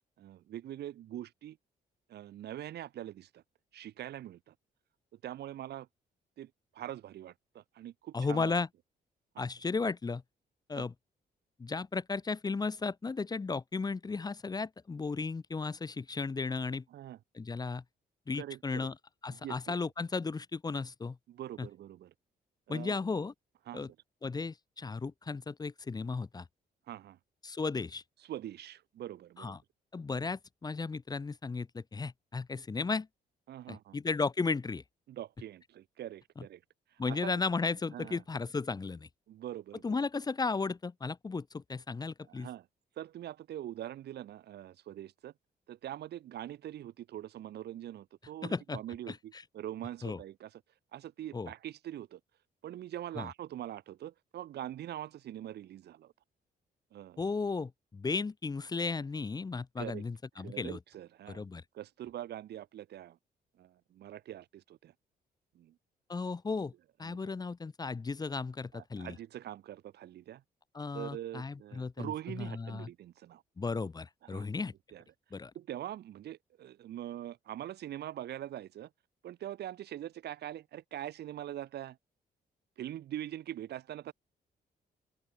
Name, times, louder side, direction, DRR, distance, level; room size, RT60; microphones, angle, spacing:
voice 1, 0.2-1.6 2.1-3.4 3.7-4.5 5.2-5.9 6.4-8.5 9.3-9.5 10.7-10.9 16.9-17.2 18.4-18.9 19.3-19.8 21.3-22.1 22.7-23.0 23.7-23.8 26.9-27.2 28.3-29.6 33.5-34.0 35.1-36.6 37.1-37.3 37.9-38.2 39.3-40.0 42.3-42.7 43.0-45.3 45.7-50.6 50.9-52.2 52.6-56.1 56.9-57.2 59.8-60.1 60.4-61.4 61.7-63.2 63.6-64.9 65.5-65.7 67.0-67.2 68.7-70.4 70.9-73.4 74.2-74.5 74.9-75.0 75.5-78.9 79.2-82.0 82.8-84.1, right 12 dB, 80° right, 3.0 m, -43 dB
voice 2, 8.1-8.7 9.4-10.2 10.7-10.9 11.6-16.8 17.3-17.8 18.3-18.9 19.2-21.2 21.6-21.7 22.7-23.3 23.7-23.9 24.2-26.5 27.4-28.0 29.4-29.6 29.9-33.1 33.7-34.8 36.4-36.5 37.0-39.1 39.8-42.5 48.4-48.8 49.1-49.4 50.0-50.2 51.3-51.5 53.2-53.3 57.2-60.8 61.3-61.6 66.1-66.7 67.0-69.2 70.7-72.9 73.6-74.7 75.3-75.5, left 4 dB, 25° left, 1.4 m, -35 dB
cardioid pair, 135°, 17 cm